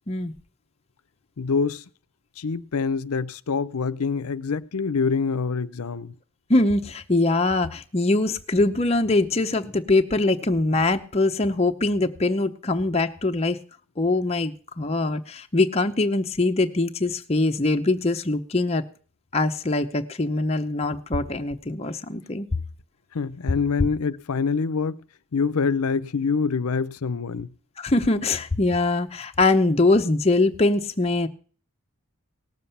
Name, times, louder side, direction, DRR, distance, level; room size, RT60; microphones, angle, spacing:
voice 1, 1.4-1.8 2.4-6.1 23.1-25.0 25.3-27.5, left 5 dB, 90° left, 0.6 m, -25 dB
voice 2, 6.5-13.6 14.0-18.8 19.3-22.5 27.8-31.3, left 2 dB, 30° left, 0.7 m, -22 dB
18.0 x 7.2 x 5.6 m
head